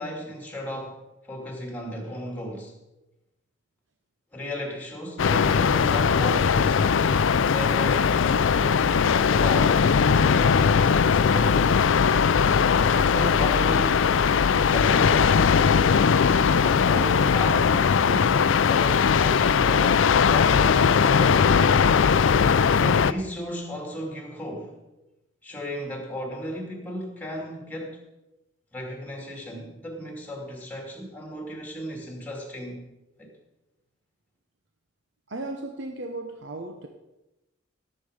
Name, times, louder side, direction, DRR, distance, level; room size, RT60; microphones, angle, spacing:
voice 1, 0.0-2.8 4.3-6.9 7.5-9.9 10.2-11.7 12.9-14.1 14.6-15.3 16.6-21.9 22.8-24.8 25.4-28.1 28.7-32.9 33.2-33.3, equal, 10° left, 1 dB, 2.4 m, -35 dB
sound 1, 5.2-23.1, left 6 dB, 75° left, 0.4 m, -20 dB
voice 2, 35.3-36.9, right 2 dB, 65° right, 4 dB, 1.0 m, -35 dB
17.5 x 7.7 x 5.0 m, 0.99 s
head